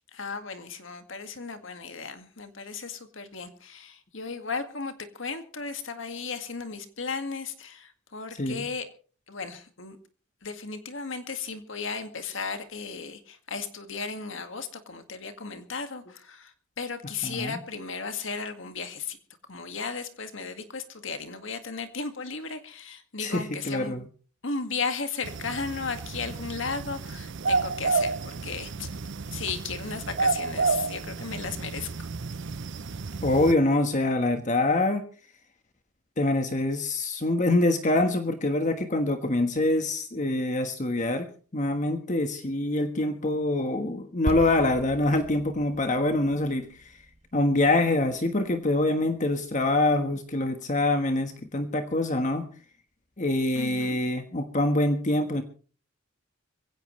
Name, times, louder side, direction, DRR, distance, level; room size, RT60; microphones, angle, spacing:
voice 1, 0.1-8.9 9.3-10.0 10.4-19.2 19.5-24.0 24.4-28.9 29.3-32.1 53.5-54.0, left 5 dB, 60° left, 2.0 m, -35 dB
voice 2, 17.2-17.6 23.2-24.0 33.2-35.0 36.2-41.3 41.5-47.0 47.3-52.5 53.2-55.4, left 2 dB, 35° left, 1.4 m, -25 dB
sound 1, 25.2-33.5, right 4 dB, 55° right, 0.6 m, -31 dB
sound 2, 44.3-48.6, right 1 dB, 30° right, 0.9 m, -39 dB
22.5 x 16.5 x 3.2 m
head